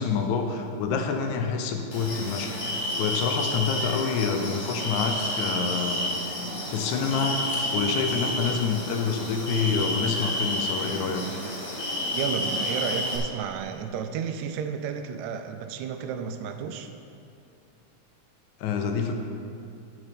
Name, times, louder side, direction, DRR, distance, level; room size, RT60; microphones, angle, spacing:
voice 1, 0.0-6.1 6.7-11.4 18.6-19.1, left 5 dB, 80° left, 5 dB, 2.1 m, -27 dB
sound 1, 1.9-13.2, left 1 dB, 40° left, 1.0 m, -30 dB
voice 2, 12.1-16.9, right 7 dB, 80° right, 7 dB, 1.8 m, -32 dB
9.5 x 6.9 x 5.2 m, 2.6 s
omnidirectional pair, 3.4 m